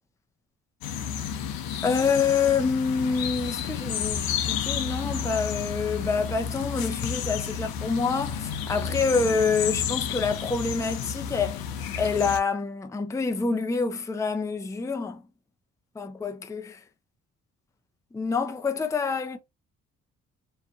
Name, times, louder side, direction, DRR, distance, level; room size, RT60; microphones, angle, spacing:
sound 1, 0.8-12.4, left 8 dB, 70° left, 0.7 m, -31 dB
voice 1, 1.8-11.6 12.0-15.2 16.0-16.8 18.1-19.4, left 5 dB, 10° left, 0.5 m, -27 dB
2.6 x 2.3 x 2.4 m
hypercardioid pair, 50°, 37 cm